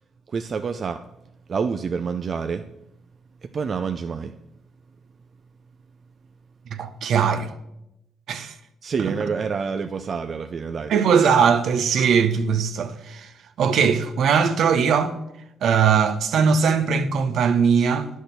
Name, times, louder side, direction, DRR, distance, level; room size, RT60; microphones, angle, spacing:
voice 1, 0.3-1.0 1.5-2.7 3.4-4.3 8.8-10.9, right 5 dB, 50° right, 0.5 m, -27 dB
voice 2, 6.7-7.5 8.3-8.5 10.9-13.3 13.6-15.1 15.6-18.1, right 6 dB, 70° right, 0.9 m, -20 dB
9.9 x 6.4 x 6.8 m
supercardioid pair, 60°, 0 cm